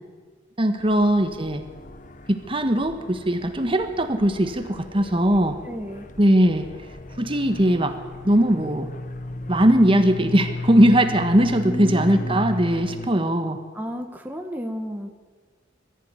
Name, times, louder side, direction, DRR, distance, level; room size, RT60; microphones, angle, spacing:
voice 1, 0.6-1.6 2.3-5.6 6.2-6.7 7.2-8.0 8.2-8.9 9.5-13.6, right 1 dB, 30° right, 7 dB, 1.4 m, -20 dB
sound 1, 0.8-13.1, left 2 dB, 45° left, 1.2 m, -35 dB
voice 2, 5.6-6.1 11.6-12.4 13.7-15.1, equal, 10° right, 3 dB, 1.4 m, -33 dB
22.0 x 14.5 x 9.8 m, 1.5 s
head